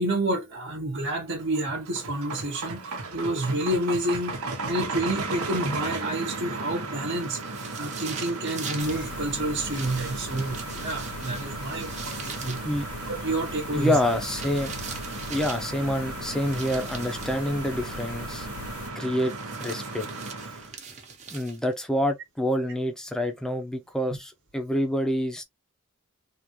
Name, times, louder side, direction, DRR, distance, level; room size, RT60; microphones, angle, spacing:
voice 1, 0.0-4.4 4.7-7.4 7.8-12.6 13.1-14.0, right 1 dB, 55° right, 1.1 m, -29 dB
sound 1, 1.3-20.7, right 3 dB, 85° right, 1.0 m, -36 dB
sound 2, 7.1-9.0 9.7-12.7 13.9-15.7 16.4-17.4 19.0-21.8, right 6 dB, 30° right, 0.9 m, -41 dB
empty room, 8.8-18.9, left 5 dB, 75° left, 0.4 m, -42 dB
voice 2, 13.7-14.7 15.3-18.5 19.0-19.3 19.6-20.1 21.3-25.4, equal, 5° left, 0.6 m, -27 dB
3.6 x 2.4 x 2.9 m
head